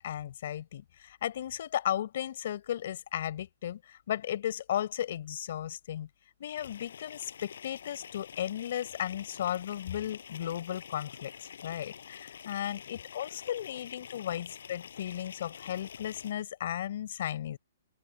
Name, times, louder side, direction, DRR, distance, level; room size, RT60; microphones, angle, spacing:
voice 1, 0.0-6.1 6.4-17.6, left 11 dB, 50° left, 5.3 m, -35 dB
sound 1, 6.6-16.3, left 8 dB, 70° left, 6.2 m, -47 dB
hypercardioid pair, 170°, 0 cm